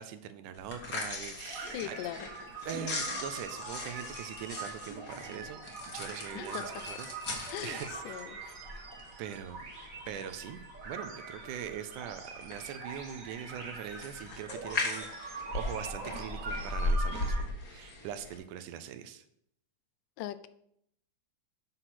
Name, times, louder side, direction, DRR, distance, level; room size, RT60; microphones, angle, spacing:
voice 1, 0.0-2.0 2.4-5.6 5.9-8.6 9.2-9.6 10.1-19.2, right 9 dB, 80° right, 11 dB, 2.0 m, -42 dB
sound 1, 0.5-18.4, left 2 dB, 40° left, 1.5 m, -39 dB
sound 2, 1.5-17.4, right 3 dB, 50° right, 1.0 m, -43 dB
voice 2, 1.7-2.2 6.4-6.6 7.5-7.8 8.1-8.3 20.2-20.5, left 12 dB, 80° left, 14 dB, 2.1 m, -38 dB
8.0 x 5.8 x 5.9 m, 0.72 s
omnidirectional pair, 3.8 m